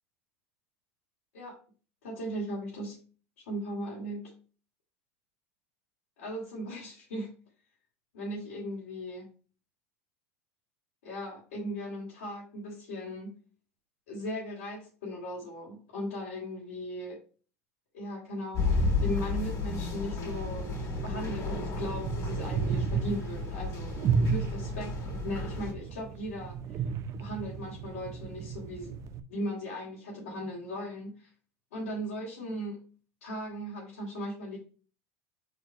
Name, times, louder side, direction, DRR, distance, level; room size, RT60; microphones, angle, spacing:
voice 1, 2.0-3.0 3.5-4.3 6.2-7.3 8.1-9.3 11.0-13.3 14.1-17.2 17.9-20.7 21.0-24.0 24.3-26.8 27.2-29.0 29.3-31.3 31.7-32.8 33.2-34.6, equal, 75° left, -7 dB, 2.4 m, -37 dB
sound 1, 18.5-25.7, left 3 dB, 45° left, 3.1 m, -33 dB
sound 2, 20.3-29.2, right 5 dB, 45° right, 0.7 m, -33 dB
4.9 x 4.3 x 4.5 m, 0.39 s
hypercardioid pair, 85°, 8 cm